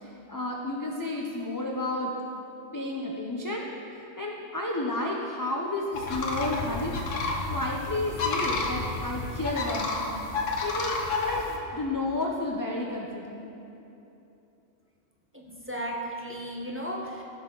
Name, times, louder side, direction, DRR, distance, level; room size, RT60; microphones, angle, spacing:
voice 1, 0.0-2.1 2.7-3.7 4.2-6.9 7.5-10.2 10.6-13.5, left 2 dB, 25° left, -1 dB, 0.4 m, -31 dB
sound 1, 5.9-11.6, left 3 dB, 80° left, 1.3 m, -30 dB
voice 2, 15.3-17.2, equal, 10° right, -3 dB, 0.9 m, -35 dB
14.5 x 6.2 x 3.8 m, 2.9 s
omnidirectional pair, 1.3 m